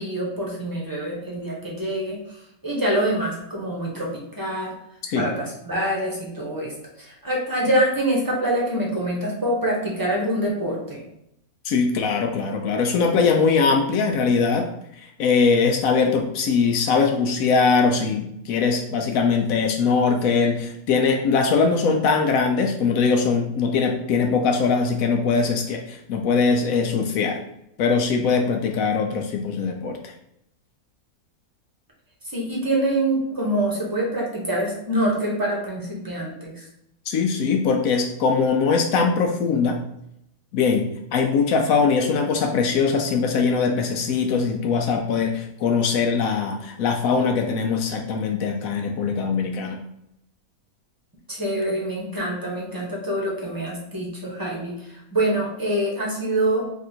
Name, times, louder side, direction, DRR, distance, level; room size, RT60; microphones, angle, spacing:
voice 1, 0.0-2.2 2.6-4.7 5.1-6.7 7.0-11.0 32.2-36.6 51.3-56.6, right 1 dB, 15° right, -3 dB, 0.9 m, -25 dB
voice 2, 11.6-14.7 15.0-27.4 27.8-30.1 37.1-39.8 40.5-40.9 41.1-49.8, left 5 dB, 75° left, 3 dB, 1.0 m, -21 dB
3.5 x 2.5 x 4.3 m, 0.77 s
omnidirectional pair, 1.5 m